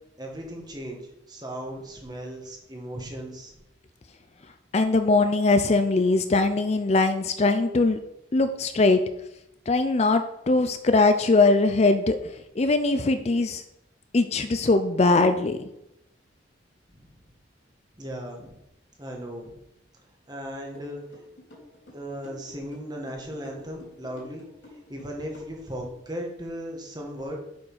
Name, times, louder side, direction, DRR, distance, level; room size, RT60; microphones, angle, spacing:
voice 1, 0.2-1.0 1.3-3.5 16.9-17.1 18.0-18.6 19.0-19.5 20.3-21.0 21.9-27.4, equal, 20° right, 1 dB, 1.7 m, -37 dB
voice 2, 4.7-8.0 8.3-9.0 9.7-13.6 14.1-15.6, left 3 dB, 35° left, 9 dB, 0.5 m, -21 dB
sound 1, 20.7-26.0, left 1 dB, 75° left, 3.8 m, -49 dB
8.2 x 5.5 x 5.6 m, 0.83 s
head